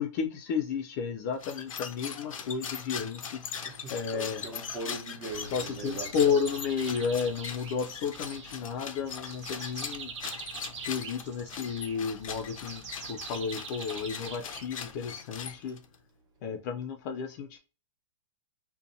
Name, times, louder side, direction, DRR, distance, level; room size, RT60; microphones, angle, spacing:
voice 1, 0.0-3.4 3.9-4.4 5.5-10.1 10.8-15.8 16.4-17.6, left 6 dB, 35° left, 0.4 m, -32 dB
sound 1, 1.3-16.0, left 7 dB, 85° left, 0.5 m, -41 dB
voice 2, 3.7-6.4, right 2 dB, 25° right, 0.8 m, -40 dB
sound 2, 5.3-15.1, right 5 dB, 60° right, 0.7 m, -45 dB
2.6 x 2.2 x 2.6 m
hypercardioid pair, 140°, 17 cm